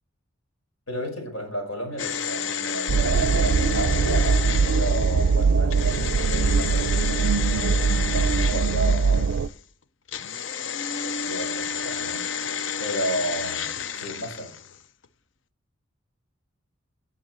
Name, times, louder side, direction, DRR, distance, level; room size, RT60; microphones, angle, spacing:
voice 1, 0.9-7.0 8.0-9.4 11.2-12.3 12.8-13.7 13.9-14.5, equal, 85° left, 5.0 m, -32 dB
sound 1, 2.0-9.6 10.1-14.8 15.0-15.1, left 6 dB, 65° left, 0.6 m, -31 dB
sound 2, 2.9-9.5, right 5 dB, 85° right, 0.4 m, -22 dB
19.5 x 7.0 x 3.0 m
head